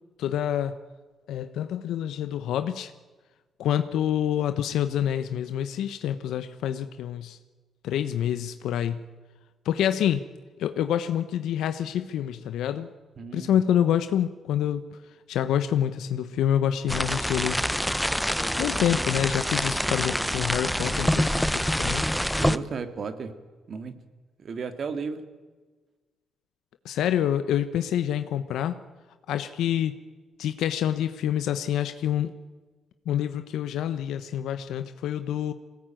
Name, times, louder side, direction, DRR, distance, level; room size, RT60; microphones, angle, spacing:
voice 1, 0.2-0.7 1.3-2.9 3.6-7.4 7.8-9.1 9.6-10.2 10.6-12.9 13.3-14.8 15.3-17.6 18.6-22.0 26.8-28.8 29.3-29.9 30.4-32.3 33.1-35.5, left 10 dB, 80° left, 10 dB, 1.0 m, -27 dB
voice 2, 13.2-13.6 22.4-23.3 23.7-23.9 24.4-25.2, right 5 dB, 50° right, 10 dB, 2.4 m, -34 dB
sound 1, 16.9-22.6, equal, ahead, 0.8 m, -26 dB
22.5 x 18.5 x 9.1 m, 1.3 s
cardioid pair, 90°, 0 cm